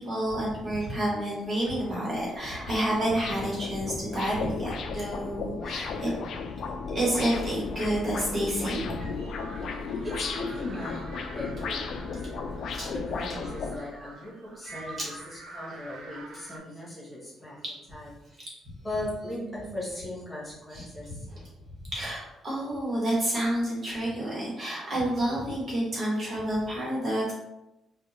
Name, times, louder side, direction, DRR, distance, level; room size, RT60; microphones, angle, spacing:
voice 1, 0.0-6.1 6.9-9.0 12.7-12.9 15.0-15.1 20.7-20.8 21.3-21.5 21.9-27.3, right 1 dB, 40° right, -5 dB, 1.4 m, -29 dB
sound 1, 0.9-1.0 1.4-13.8, left 4 dB, 65° left, 0.3 m, -35 dB
sound 2, 8.6-16.6, right 2 dB, 75° right, 0.6 m, -47 dB
voice 2, 9.5-12.4 12.9-17.6 17.9-18.1 18.8-21.3, left 1 dB, 20° left, -6 dB, 1.3 m, -38 dB
3.5 x 2.3 x 2.8 m, 0.94 s
cardioid pair, 90°, 0 cm